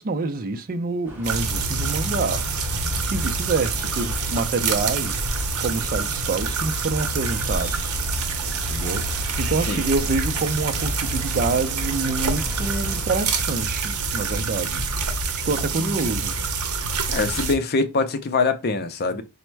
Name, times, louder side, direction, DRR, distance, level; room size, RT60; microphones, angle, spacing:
voice 1, 0.0-2.5 3.1-8.0 8.7-14.9 15.4-16.4, right 3 dB, 40° right, 0.4 m, -27 dB
sound 1, 1.0-13.4, equal, 10° right, 1.1 m, -39 dB
sound 2, 1.2-17.5, right 4 dB, 75° right, 0.7 m, -26 dB
voice 2, 17.1-19.2, left 4 dB, 45° left, 0.5 m, -23 dB
4.2 x 2.1 x 4.5 m
head